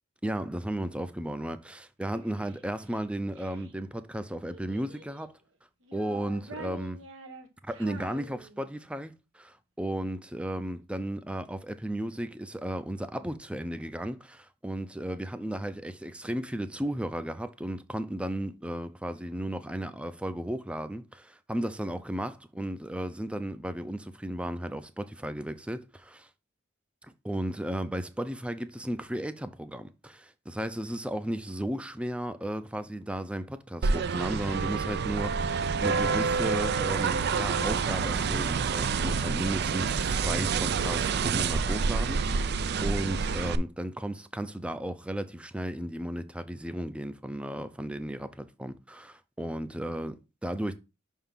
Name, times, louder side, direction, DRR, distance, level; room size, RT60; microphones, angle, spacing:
voice 1, 0.2-5.4 5.9-7.0 7.6-26.3 27.2-50.7, right 1 dB, 5° right, 0.5 m, -34 dB
Child speech kid speaking, 2.1-3.7 4.5-5.4 5.8-8.9, right 3 dB, 80° right, 1.2 m, -47 dB
sound 1, 33.8-43.6, right 5 dB, 55° right, 0.4 m, -28 dB
5.8 x 3.7 x 5.6 m
head